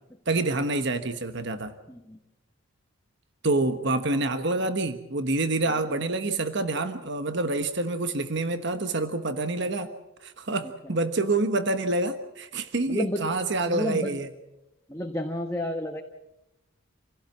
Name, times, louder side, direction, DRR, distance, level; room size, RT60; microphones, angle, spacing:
voice 1, 0.3-1.7 3.4-9.9 10.2-14.3, right 2 dB, 55° right, 9 dB, 1.3 m, -27 dB
voice 2, 12.9-13.3 13.7-14.2 14.9-16.0, left 1 dB, 15° left, 2 dB, 1.3 m, -30 dB
27.5 x 16.5 x 7.3 m, 0.93 s
head